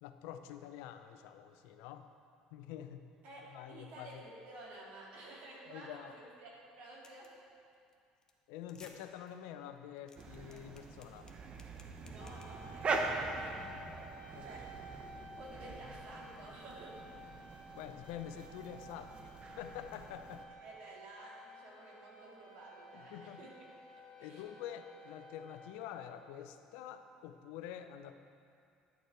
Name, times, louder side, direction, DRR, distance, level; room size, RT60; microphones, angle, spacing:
voice 1, 0.0-2.1 2.5-3.0 3.5-4.2 5.7-6.1 8.5-11.3 14.3-14.4 17.7-20.5 22.9-23.4 24.2-28.1, left 10 dB, 80° left, 8 dB, 0.5 m, -47 dB
voice 2, 3.2-7.3 12.0-14.1 14.4-14.6 15.4-17.0 20.6-23.5 24.1-24.5, right 2 dB, 70° right, -3 dB, 2.2 m, -52 dB
sound 1, 7.0-7.4 7.7-7.9 8.2-8.3 8.6-8.9 9.3-9.4 9.8-12.9, left 4 dB, 25° left, 1.0 m, -59 dB
sound 2, 10.2-20.4, right 3 dB, 40° right, 0.9 m, -43 dB
sound 3, 12.2-25.7, right 1 dB, 60° left, 2.3 m, -53 dB
10.5 x 6.4 x 4.6 m, 2.4 s
supercardioid pair, 85°, 3 cm